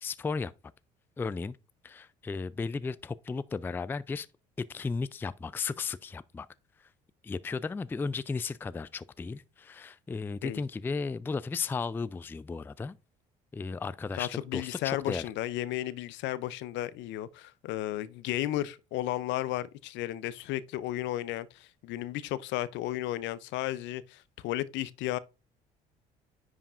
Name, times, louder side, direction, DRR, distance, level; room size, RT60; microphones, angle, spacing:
voice 1, 0.0-0.5 1.2-1.6 1.8-4.3 4.7-6.5 7.2-13.0 13.5-15.3, left 4 dB, 10° left, 0.3 m, -35 dB
voice 2, 14.2-25.2, left 14 dB, 65° left, 0.5 m, -34 dB
9.9 x 4.9 x 2.5 m
hypercardioid pair, 65°, 21 cm